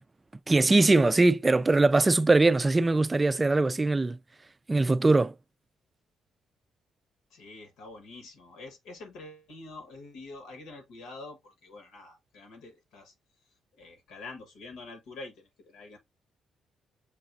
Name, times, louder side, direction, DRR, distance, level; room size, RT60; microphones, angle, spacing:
voice 1, 0.5-4.2 4.7-5.3, right 2 dB, 20° right, 0.3 m, -21 dB
voice 2, 7.3-13.1 13.7-16.0, left 3 dB, 90° left, 1.4 m, -46 dB
6.5 x 2.7 x 2.6 m
cardioid pair, 90°, 0 cm